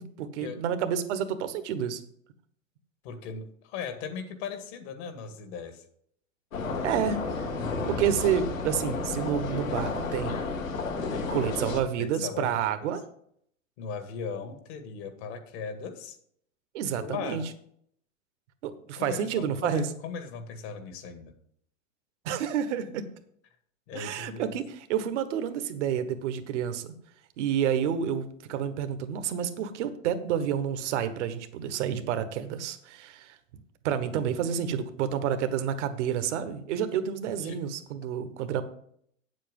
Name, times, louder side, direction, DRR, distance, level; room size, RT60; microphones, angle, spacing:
voice 1, 0.0-2.0 6.8-7.5 7.9-10.4 11.3-13.0 16.7-17.4 18.6-19.8 22.2-23.0 23.9-26.9 27.4-33.4 33.8-38.6, right 8 dB, 60° right, 10 dB, 1.3 m, -29 dB
voice 2, 3.0-5.8 11.1-11.7 12.0-12.7 13.8-16.2 17.0-17.4 19.0-21.3 23.9-24.6 37.4-37.6, left 6 dB, 50° left, 7 dB, 2.1 m, -38 dB
sound 1, 6.5-11.8, left 4 dB, 80° left, 2.1 m, -32 dB
8.6 x 7.6 x 5.4 m, 0.66 s
hypercardioid pair, 110°, 40 cm